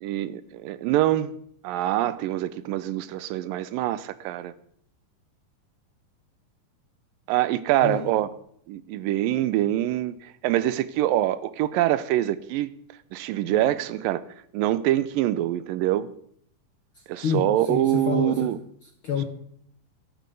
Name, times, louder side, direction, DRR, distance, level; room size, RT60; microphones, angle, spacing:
voice 1, 0.0-1.3 1.6-4.5 7.3-8.3 8.7-10.1 10.4-12.7 13.1-14.2 14.5-16.1 17.1-18.6, right 13 dB, 90° right, 15 dB, 2.4 m, -24 dB
voice 2, 7.8-8.1 13.5-13.8 16.9-19.2, left 7 dB, 75° left, 5 dB, 1.2 m, -30 dB
13.5 x 13.0 x 5.3 m, 0.65 s
omnidirectional pair, 3.9 m